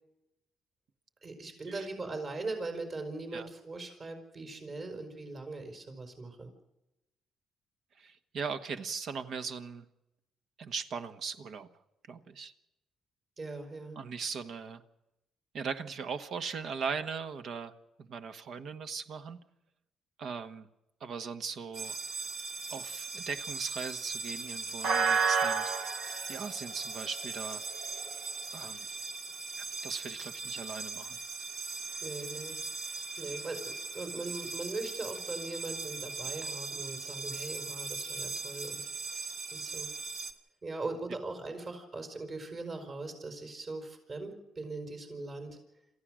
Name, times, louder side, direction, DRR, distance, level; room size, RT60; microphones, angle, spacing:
voice 1, 1.2-6.5 13.4-14.0 32.0-32.6 32.8-39.9 40.6-45.6, right 3 dB, 45° right, 5 dB, 5.2 m, -40 dB
voice 2, 8.0-9.8 10.6-11.7 12.1-12.5 13.9-14.8 15.5-17.7 18.0-19.4 20.2-20.7 21.0-22.0 22.7-25.7 26.3-27.6 28.5-28.9 29.6-31.2, right 5 dB, 65° right, 9 dB, 1.4 m, -39 dB
sound 1, 21.7-40.3, right 4 dB, 85° right, 2.1 m, -36 dB
27.5 x 14.5 x 6.4 m, 0.92 s
cardioid pair, 90°, 0 cm